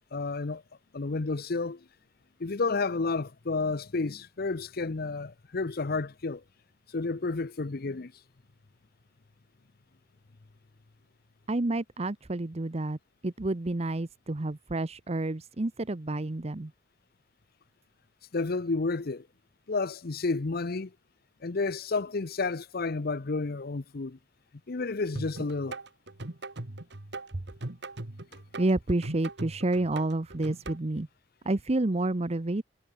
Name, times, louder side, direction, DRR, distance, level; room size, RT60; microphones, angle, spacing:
voice 1, 0.1-0.6 0.9-1.8 2.4-6.4 6.9-8.1 18.3-19.3 19.7-20.9 21.4-24.2 24.7-25.8, left 3 dB, 55° left, 0.7 m, -31 dB
voice 2, 11.5-13.0 13.2-16.7 28.6-31.1 31.4-32.6, right 2 dB, 35° right, 0.8 m, -29 dB
sound 1, 25.2-30.8, right 2 dB, 65° right, 1.9 m, -40 dB
head